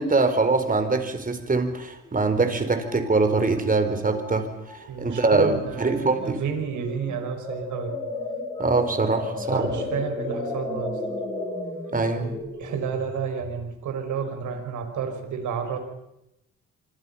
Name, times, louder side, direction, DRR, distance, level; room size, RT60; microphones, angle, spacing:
voice 1, 0.0-4.5 5.0-6.4 8.6-9.7 11.9-12.3, right 3 dB, 25° right, 8 dB, 4.1 m, -23 dB
sound 1, 2.0-2.1 2.3-4.9 5.1-5.4 5.8-6.3 6.7-13.6, left 2 dB, 15° left, 7.7 m, -34 dB
voice 2, 4.9-8.0 9.4-11.0 12.6-15.8, right 6 dB, 75° right, 6 dB, 5.3 m, -31 dB
26.0 x 25.5 x 5.7 m, 0.88 s
cardioid pair, 90°, 30 cm